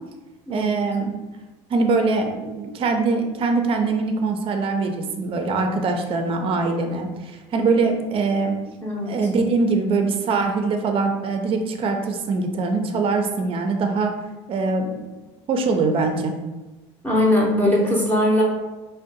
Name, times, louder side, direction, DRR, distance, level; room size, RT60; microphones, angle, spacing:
voice 1, 0.5-1.2 1.7-8.6 9.1-14.1 14.5-15.0 15.5-16.3, right 3 dB, 40° right, 5 dB, 0.5 m, -23 dB
voice 2, 8.8-9.1 17.0-18.4, left 1 dB, 10° left, -4 dB, 0.7 m, -20 dB
2.6 x 2.1 x 3.8 m, 1.2 s
supercardioid pair, 95°, 15 cm